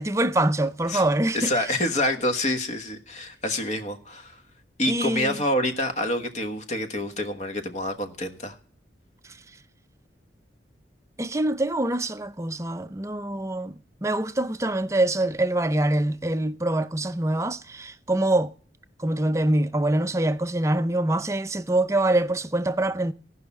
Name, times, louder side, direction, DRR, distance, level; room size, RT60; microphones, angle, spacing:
voice 1, 0.0-1.5 4.9-5.4 11.2-13.7 14.0-18.5 19.0-23.1, right 1 dB, 15° right, 0.5 m, -24 dB
voice 2, 1.3-4.4 4.8-8.6, left 1 dB, 40° left, 1.3 m, -27 dB
17.0 x 5.7 x 7.0 m
head